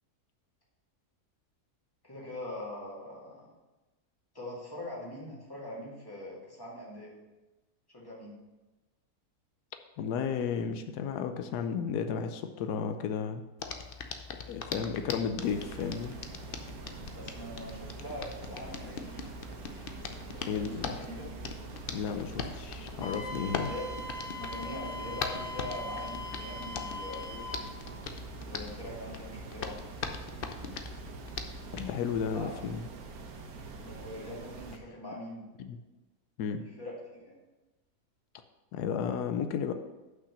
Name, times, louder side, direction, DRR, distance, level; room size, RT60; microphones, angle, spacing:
voice 1, 2.0-3.5 4.3-7.1 7.9-8.4 17.1-19.3 20.3-21.3 23.6-24.0 24.4-27.7 28.4-29.8 32.3-32.7 33.8-35.4 36.6-37.4, left 1 dB, 15° left, -5 dB, 2.2 m, -42 dB
voice 2, 10.0-13.4 14.5-16.1 20.5-21.0 21.9-23.7 31.7-32.9 35.6-35.8 36.4-36.6 38.7-39.7, left 7 dB, 85° left, 7 dB, 1.2 m, -33 dB
Hands, 13.6-31.9, left 5 dB, 55° left, 0.6 m, -41 dB
sound 1, 15.4-34.8, right 4 dB, 75° right, 1.3 m, -45 dB
Wind instrument woodwind instrument, 23.0-27.7, left 2 dB, 35° left, 1.0 m, -41 dB
5.9 x 5.8 x 6.7 m, 1.1 s
omnidirectional pair, 1.6 m